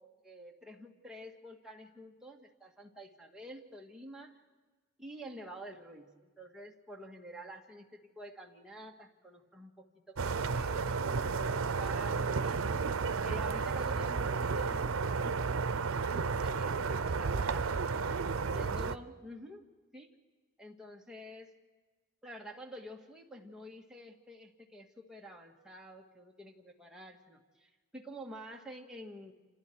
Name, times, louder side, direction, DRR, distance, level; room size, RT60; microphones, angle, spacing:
voice 1, 0.0-4.4 5.0-12.6 13.2-19.7 19.9-20.1 20.6-21.5 22.2-29.3, equal, 5° right, -1 dB, 1.9 m, -49 dB
sound 1, 10.2-19.0, right 4 dB, 85° right, 0.6 m, -32 dB
29.5 x 27.0 x 4.7 m, 1.3 s
head